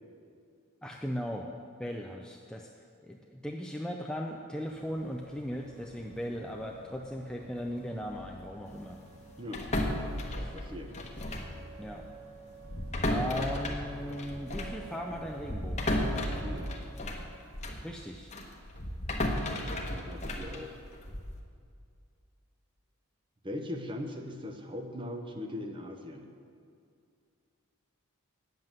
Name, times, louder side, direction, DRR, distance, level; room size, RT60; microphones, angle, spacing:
voice 1, 0.8-1.5 1.8-2.7 3.0-9.0 10.3-10.5 11.8-12.1 13.1-15.9 17.8-18.3, equal, 5° left, 0 dB, 0.4 m, -38 dB
sound 1, 4.6-16.9, right 3 dB, 50° right, 2.8 m, -52 dB
sound 2, 9.5-11.6 11.8-12.0 12.6-17.9 18.3-21.4, left 1 dB, 30° left, 1.0 m, -34 dB
voice 2, 10.5-10.9 16.4-16.7 19.7-20.8 23.4-26.3, left 1 dB, 20° right, 4 dB, 0.8 m, -40 dB
9.5 x 7.6 x 7.4 m, 2.4 s
head